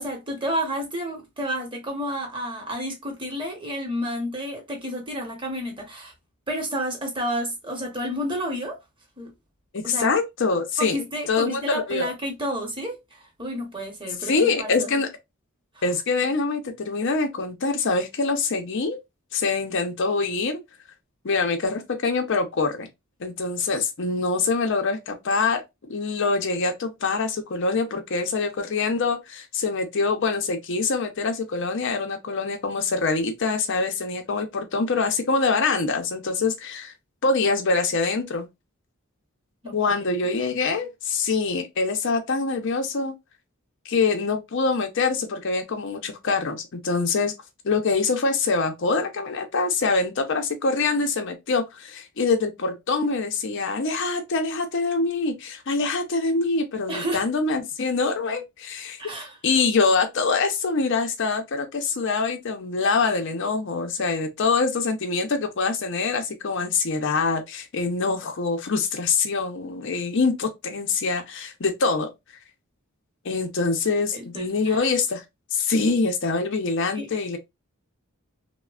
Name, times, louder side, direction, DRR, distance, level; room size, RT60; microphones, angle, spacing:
voice 1, 0.0-6.1 6.5-8.8 9.2-9.3 9.8-10.1 10.8-14.9 15.7-15.8 39.6-39.8 56.9-57.2 59.0-59.4 74.1-74.9 76.9-77.1, equal, 25° right, 0.9 m, -30 dB
voice 2, 9.7-11.0 11.3-12.1 14.2-15.1 15.8-19.0 19.3-20.6 21.2-22.9 23.2-25.6 25.9-36.9 37.2-38.5 39.7-43.1 43.9-47.3 47.6-59.0 59.4-72.1 73.2-75.2 75.5-77.4, left 4 dB, 65° left, 0.6 m, -24 dB
3.1 x 2.1 x 2.4 m
head